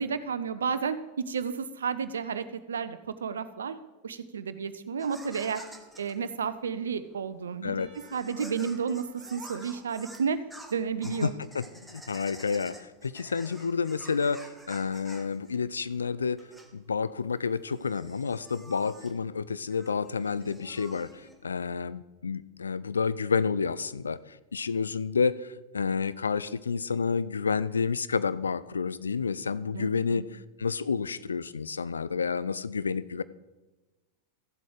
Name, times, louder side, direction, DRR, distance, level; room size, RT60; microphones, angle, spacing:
voice 1, 0.0-3.8 4.0-5.6 6.0-7.8 8.1-10.4 10.7-11.3 29.7-30.3, right 6 dB, 70° right, 13 dB, 0.6 m, -32 dB
sound 1, 5.0-21.8, right 1 dB, ahead, 1.2 m, -50 dB
Percussion / Church bell, 7.8-12.0, right 4 dB, 30° right, 2.7 m, -61 dB
voice 2, 11.2-16.4 16.7-33.2, left 5 dB, 75° left, 16 dB, 0.4 m, -30 dB
14.0 x 7.7 x 4.9 m, 1.2 s
figure-of-eight pair, 90°, 0 cm